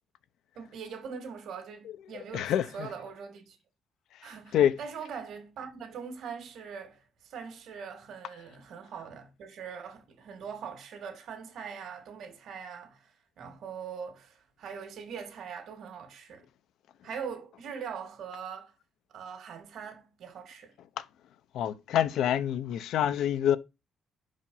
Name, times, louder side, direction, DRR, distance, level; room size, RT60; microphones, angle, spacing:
voice 1, 0.6-3.6 4.2-16.5 17.0-18.7 19.1-20.7, right 6 dB, 75° right, 2.2 m, -42 dB
voice 2, 2.3-2.7 4.5-4.7 21.0-21.1 21.5-23.6, left 10 dB, 80° left, 0.6 m, -26 dB
5.6 x 5.1 x 5.4 m
cardioid pair, 90°, 0 cm